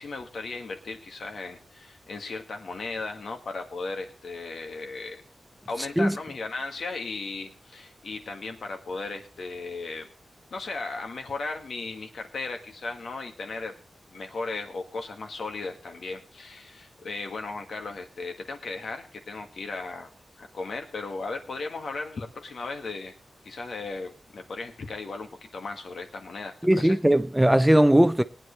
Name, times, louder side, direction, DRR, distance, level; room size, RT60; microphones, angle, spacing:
voice 1, 0.0-5.2 5.7-10.1 10.5-13.8 14.1-20.1 20.4-23.1 23.4-27.0, left 3 dB, 75° left, 1.9 m, -36 dB
voice 2, 26.6-28.2, right 1 dB, 5° right, 0.5 m, -19 dB
21.0 x 9.3 x 3.3 m
wide cardioid pair, 115°, 0 cm